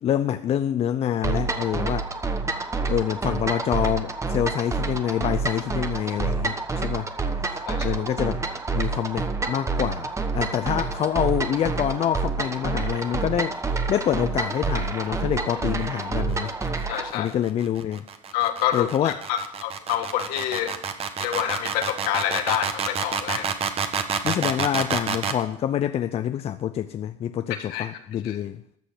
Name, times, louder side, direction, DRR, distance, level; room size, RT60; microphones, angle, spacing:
voice 1, 0.0-2.1 2.9-7.1 7.8-8.4 8.7-13.6 13.9-16.5 17.1-18.0 18.7-19.2 24.2-28.6, left 10 dB, 40° left, 0.6 m, -26 dB
sound 1, 1.2-17.1, right 4 dB, 20° right, 1.2 m, -28 dB
voice 2, 7.6-8.0 16.9-17.3 18.3-20.7 21.2-23.5 27.5-27.9 28.2-28.4, left 11 dB, 70° left, 1.8 m, -27 dB
sound 2, 16.2-25.4, right 6 dB, 40° right, 1.4 m, -28 dB
13.5 x 6.4 x 7.9 m
supercardioid pair, 95°, 16 cm